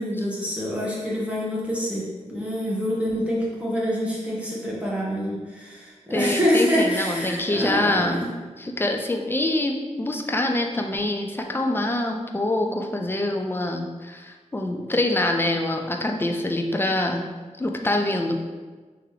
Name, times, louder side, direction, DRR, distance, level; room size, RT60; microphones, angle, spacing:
voice 1, 0.0-8.3, equal, 10° right, -6 dB, 1.1 m, -26 dB
voice 2, 6.1-8.2 8.6-17.2 17.6-18.4, left 1 dB, 15° left, 3 dB, 0.5 m, -25 dB
3.7 x 3.0 x 4.8 m, 1.3 s
wide cardioid pair, 90°, 13 cm